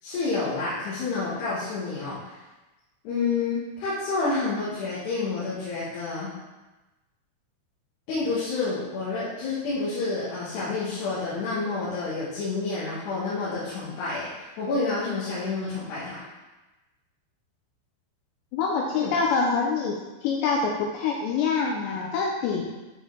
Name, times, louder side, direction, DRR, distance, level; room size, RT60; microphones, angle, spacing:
voice 1, 0.0-2.4 3.0-6.3 8.1-16.2 18.9-19.2, left 3 dB, 65° left, -11 dB, 3.3 m, -29 dB
voice 2, 18.5-22.7, left 5 dB, 85° left, 0 dB, 2.6 m, -25 dB
9.1 x 4.6 x 3.8 m, 1.1 s
omnidirectional pair, 5.6 m